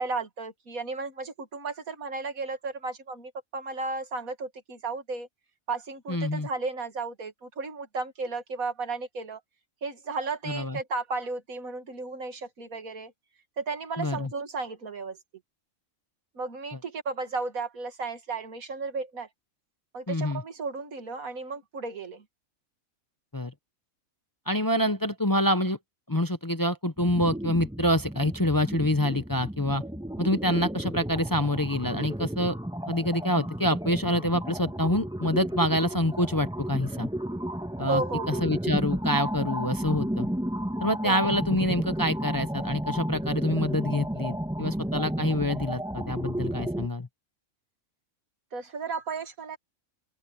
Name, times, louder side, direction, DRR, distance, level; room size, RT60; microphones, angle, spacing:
voice 1, 0.0-5.3 5.7-9.4 9.8-13.1 13.6-15.2 16.3-19.3 19.9-22.2 37.9-38.5 41.0-41.4 48.5-49.6, right 4 dB, 80° right, 2.4 m, -34 dB
voice 2, 6.1-6.5 10.5-10.8 14.0-14.3 20.1-20.4 23.3-23.5 24.5-25.8 26.1-29.8 30.2-32.6 32.9-37.1 37.8-38.0 38.3-40.3 40.8-47.1, left 1 dB, 25° left, 0.5 m, -26 dB
sound 1, 27.0-46.9, right 1 dB, 5° right, 1.2 m, -33 dB
open air
omnidirectional pair, 1.5 m